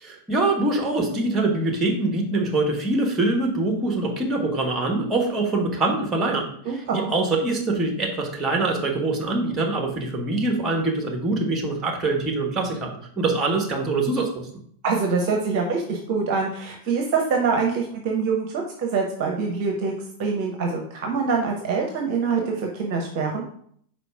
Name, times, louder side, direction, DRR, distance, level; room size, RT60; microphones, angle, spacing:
voice 1, 0.0-14.5, right 2 dB, 20° right, 2 dB, 1.3 m, -24 dB
voice 2, 6.6-7.1 14.8-19.9 20.2-23.4, right 5 dB, 45° right, 2 dB, 0.9 m, -25 dB
5.0 x 4.2 x 4.8 m, 0.63 s
figure-of-eight pair, 90°, 0 cm